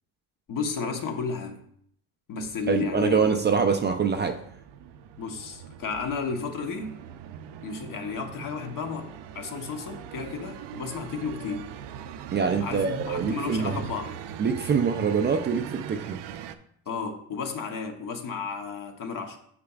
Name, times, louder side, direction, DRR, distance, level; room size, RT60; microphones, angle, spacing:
voice 1, 0.5-1.6 2.3-3.2 5.2-7.0 7.6-11.7 12.6-14.1 16.9-19.4, left 5 dB, 50° left, 5 dB, 1.0 m, -33 dB
sound 1, 2.4-16.6, right 9 dB, 75° right, 0.6 m, -41 dB
voice 2, 2.7-4.4 12.3-13.7 14.4-16.2, right 6 dB, 25° right, 5 dB, 0.4 m, -24 dB
8.3 x 6.7 x 2.4 m, 0.67 s
cardioid pair, 140°, 41 cm